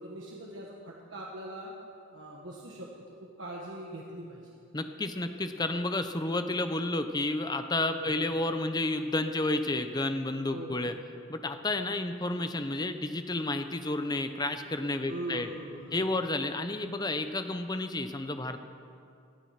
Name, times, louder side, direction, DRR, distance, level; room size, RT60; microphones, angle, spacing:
voice 1, 0.0-1.7 2.1-2.9 3.4-4.5 7.9-8.2 10.5-10.9 15.1-15.9, right 1 dB, 60° right, -2 dB, 1.5 m, -41 dB
voice 2, 4.7-10.9 11.3-15.5 15.9-18.6, left 2 dB, 20° left, 8 dB, 0.7 m, -31 dB
18.5 x 11.5 x 5.8 m, 2.5 s
head